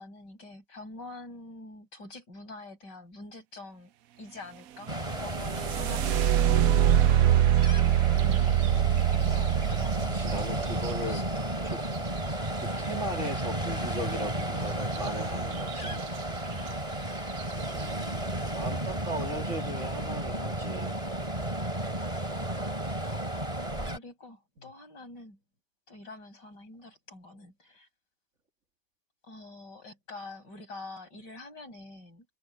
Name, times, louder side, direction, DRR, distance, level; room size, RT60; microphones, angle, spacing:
voice 1, 0.0-3.9 4.2-7.2 9.7-10.4 11.0-11.6 16.5-16.7 22.3-23.1 23.8-25.4 25.9-27.9 29.2-32.3, left 2 dB, 80° left, 7.8 m, -46 dB
Ocean, 4.9-24.0, right 1 dB, 20° right, 4.3 m, -33 dB
sound 1, 5.0-12.9 14.9-15.1 15.5-16.1 16.7-16.8 17.3-17.6, right 11 dB, 65° right, 1.0 m, -25 dB
voice 2, 10.1-11.2 11.6-12.1 12.6-16.0 17.7-21.0 24.6-24.7, right 1 dB, 45° right, 2.5 m, -38 dB
omnidirectional pair, 1.8 m